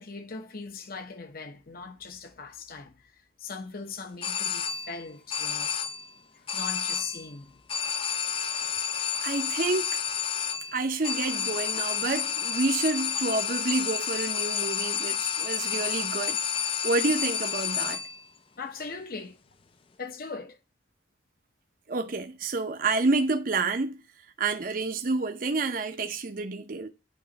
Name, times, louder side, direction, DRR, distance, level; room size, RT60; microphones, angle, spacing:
voice 1, 0.0-5.7 6.3-7.5 18.6-19.4 20.0-20.6, left 4 dB, 55° left, 0.9 m, -40 dB
sound 1, 4.2-5.0 5.3-6.1 6.5-7.3 7.7-18.2, left 8 dB, 30° left, 0.4 m, -30 dB
voice 2, 9.2-9.9 10.7-16.4 16.8-18.0 21.9-24.0 24.4-26.9, right 3 dB, 50° right, 0.7 m, -29 dB
9.2 x 3.1 x 5.1 m
head